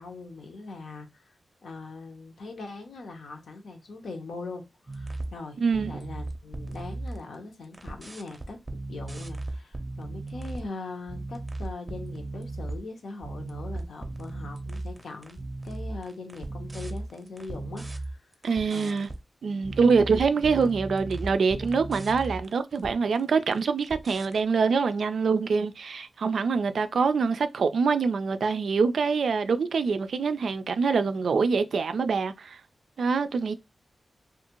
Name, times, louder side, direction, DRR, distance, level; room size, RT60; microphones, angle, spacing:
voice 1, 0.0-1.3 1.6-8.6 8.9-15.4 15.6-18.3 18.7-19.1, left 3 dB, 80° left, 0.7 m, -41 dB
sound 1, 4.9-5.4 5.7-7.4 7.6-10.7 11.1-12.8 13.2-19.2 19.6-23.2 23.5-24.4, right 2 dB, 25° right, 0.5 m, -36 dB
voice 2, 5.6-5.9 18.4-19.1 19.4-32.6 33.0-33.6, right 5 dB, 75° right, 0.3 m, -25 dB
2.6 x 2.3 x 2.9 m
cardioid pair, 75°, 0 cm